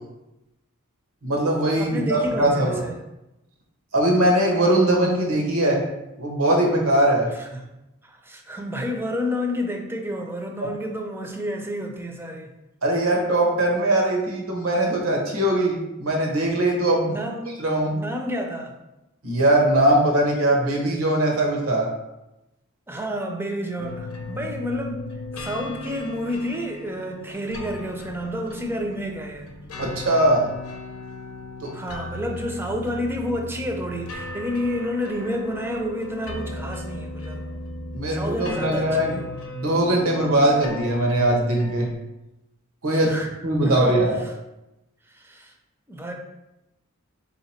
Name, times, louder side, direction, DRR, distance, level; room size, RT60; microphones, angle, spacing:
voice 1, 1.2-2.8 3.9-5.8 6.2-7.3 12.8-17.1 17.6-18.0 19.2-21.9 29.8-30.5 31.6-31.7 37.9-39.2 39.5-41.9 42.8-43.1 43.4-44.2, right 1 dB, 85° right, 0 dB, 1.0 m, -21 dB
voice 2, 1.8-3.0 7.3-7.6 8.0-12.5 17.1-17.5 17.9-18.8 22.9-25.0 25.4-29.5 31.7-37.5 38.1-39.3 42.9-43.3 43.6-44.3 45.1-45.5 45.9-46.1, equal, 10° right, 2 dB, 0.5 m, -30 dB
sound 1, 23.8-42.0, left 2 dB, 90° left, 0.7 m, -36 dB
3.7 x 2.8 x 4.3 m, 0.93 s
head